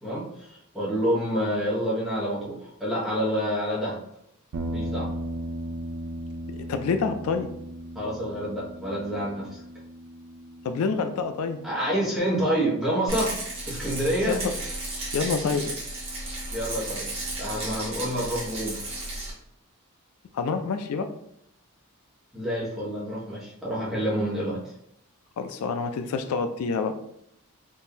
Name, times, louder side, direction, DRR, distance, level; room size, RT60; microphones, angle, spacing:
voice 1, 0.0-4.0 4.7-5.1 7.9-9.6 11.6-13.3 13.7-14.4 16.5-17.1 17.4-18.9 22.3-24.7, equal, ahead, -7 dB, 1.0 m, -28 dB
sound 1, 4.5-12.9, right 1 dB, 85° right, 0.5 m, -37 dB
voice 2, 6.5-7.5 10.6-11.6 14.3-14.5 15.1-15.7 20.3-21.1 25.4-27.0, left 5 dB, 80° left, 7 dB, 0.3 m, -27 dB
Rattle, 13.1-19.3, right 2 dB, 25° right, 1.0 m, -34 dB
3.6 x 2.5 x 2.8 m, 0.74 s
head